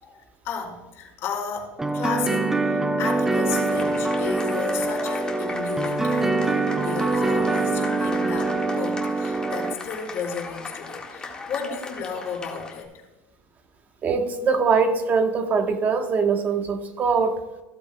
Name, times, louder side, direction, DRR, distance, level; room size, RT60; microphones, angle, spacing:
voice 1, 0.0-12.9, left 6 dB, 50° left, 0 dB, 3.1 m, -34 dB
sound 1, 1.8-9.7, right 2 dB, 5° right, 0.5 m, -24 dB
sound 2, 3.5-12.8, left 3 dB, 15° left, 1.6 m, -38 dB
voice 2, 14.0-17.4, right 5 dB, 30° right, 7 dB, 1.1 m, -22 dB
15.0 x 8.3 x 2.2 m, 1.1 s
supercardioid pair, 130°, 6 cm